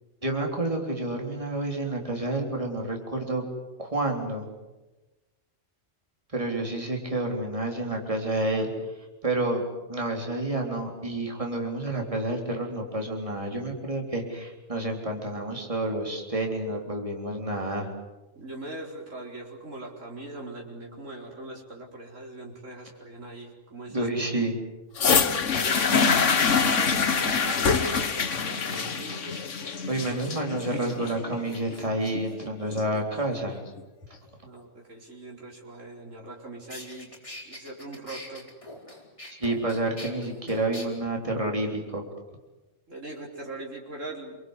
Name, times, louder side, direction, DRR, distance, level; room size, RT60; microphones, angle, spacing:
voice 1, 0.2-3.4 3.8-4.5 6.3-8.7 9.2-17.9 23.9-24.6 29.9-33.6 39.4-42.0, right 2 dB, 25° right, 1 dB, 3.8 m, -29 dB
voice 2, 18.3-24.1 25.5-29.4 29.9-30.4 30.8-31.3 34.4-37.2 37.4-38.5 42.9-44.4, right 2 dB, 85° right, -1 dB, 4.7 m, -41 dB
sound 1, 25.0-33.0 33.8-33.9, left 5 dB, 75° left, 1.6 m, -25 dB
sound 2, 36.3-36.4 36.7-40.9, left 1 dB, 25° left, 5.0 m, -43 dB
28.0 x 23.5 x 8.1 m, 1.1 s
omnidirectional pair, 1.3 m